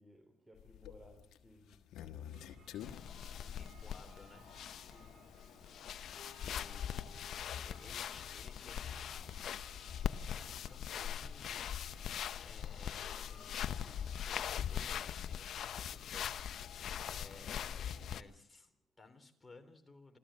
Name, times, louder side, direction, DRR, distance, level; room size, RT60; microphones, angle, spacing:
voice 1, 0.0-2.5 4.9-5.2, equal, 10° right, 4 dB, 4.4 m, -61 dB
sound 1, 0.5-18.3, left 10 dB, 85° left, 1.3 m, -57 dB
sound 2, 2.3-14.3, right 6 dB, 60° right, 3.8 m, -64 dB
sound 3, 2.8-18.2, left 9 dB, 70° left, 0.8 m, -41 dB
voice 2, 3.4-4.7 6.4-9.3 10.1-12.1 12.4-20.2, left 3 dB, 20° left, 6 dB, 3.6 m, -59 dB
28.0 x 14.0 x 7.6 m, 0.76 s
cardioid pair, 90°, 0 cm